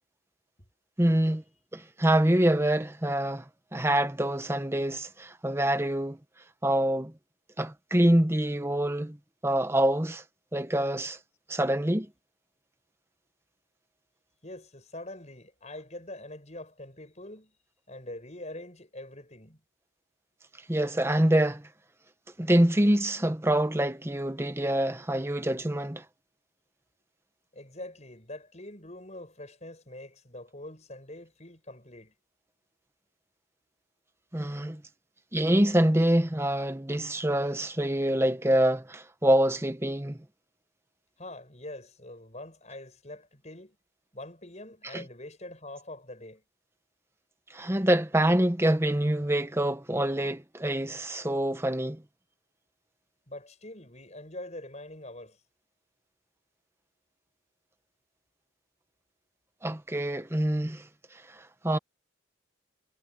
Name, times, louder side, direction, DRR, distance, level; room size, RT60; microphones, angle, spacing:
voice 1, 1.0-1.4 1.7-3.4 3.7-6.2 6.6-7.1 7.6-9.2 9.4-10.2 10.5-11.2 11.5-12.1 20.7-21.7 22.4-26.0 34.3-34.8 35.3-40.2 44.8-45.0 47.5-52.0 59.6-60.9 61.3-61.8, right 1 dB, 10° right, 0.9 m, -25 dB
voice 2, 14.4-17.5 17.9-19.6 27.5-32.1 41.2-43.8 44.1-46.4 53.3-55.4, left 1 dB, 30° left, 7.9 m, -44 dB
head